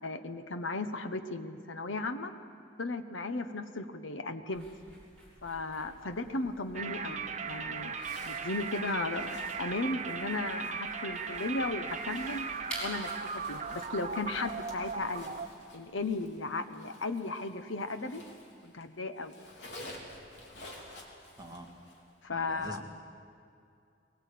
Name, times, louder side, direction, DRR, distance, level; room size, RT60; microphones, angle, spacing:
voice 1, 0.0-2.3 2.8-4.7 5.4-7.2 7.4-12.5 12.8-15.3 15.7-18.2 18.6-19.3 22.2-22.8, left 3 dB, 90° left, 8 dB, 1.1 m, -36 dB
sound 1, 4.5-15.1, equal, 5° left, 7.0 m, -50 dB
sound 2, 6.7-15.5, right 5 dB, 40° right, 0.9 m, -38 dB
Zipper (clothing), 7.9-18.8 19.1-22.1, left 1 dB, 65° left, 3.4 m, -52 dB
voice 2, 21.4-21.7 22.3-22.8, right 1 dB, 20° right, 1 dB, 1.9 m, -44 dB
22.5 x 18.5 x 8.5 m, 2.4 s
head